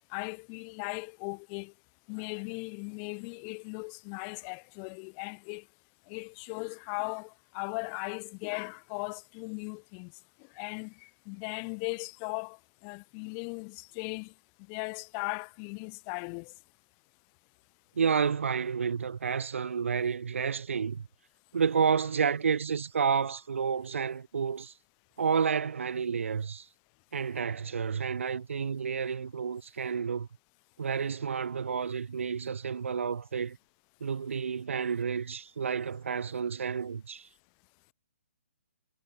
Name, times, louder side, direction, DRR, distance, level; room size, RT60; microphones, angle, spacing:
voice 1, 0.1-1.7 2.1-5.6 6.1-10.1 10.5-14.3 14.7-16.5, left 40 dB or more, 20° left, 2.3 m, -38 dB
voice 2, 18.0-21.0 21.5-24.7 25.2-26.7 27.1-30.3 30.8-33.6 34.0-37.3, right 6 dB, 70° right, 2.1 m, -30 dB
hypercardioid pair, 170°, 7 cm